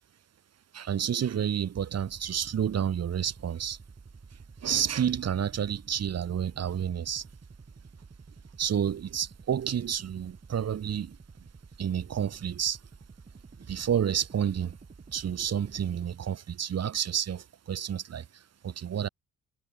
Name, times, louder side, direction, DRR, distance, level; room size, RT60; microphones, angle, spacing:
voice 1, 0.7-3.8 4.6-7.2 8.6-11.2 11.8-12.8 13.7-14.7 15.1-19.1, right 9 dB, 55° right, 3.7 m, -30 dB
sound 1, 1.9-16.2, right 4 dB, 30° right, 4.8 m, -51 dB
cardioid pair, 90°, 30 cm